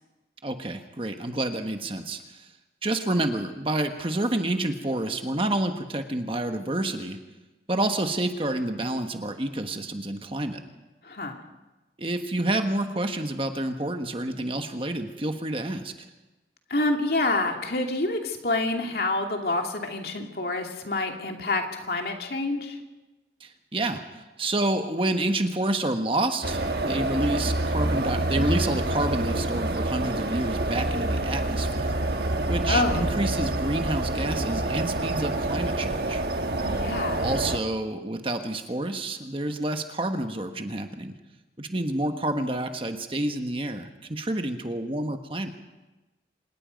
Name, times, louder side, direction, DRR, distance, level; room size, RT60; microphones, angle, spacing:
voice 1, 0.4-2.5 2.8-7.2 7.7-10.6 12.0-15.9 23.4-32.0 32.5-36.2 37.2-41.1 41.6-45.5, right 1 dB, 30° right, 6 dB, 1.3 m, -29 dB
voice 2, 11.0-11.4 16.7-22.8 32.7-33.1 36.6-37.4, left 2 dB, 60° left, 3 dB, 2.5 m, -27 dB
sound 1, 26.4-37.6, right 2 dB, 60° right, 1.4 m, -27 dB
26.0 x 20.0 x 5.3 m, 1.1 s
head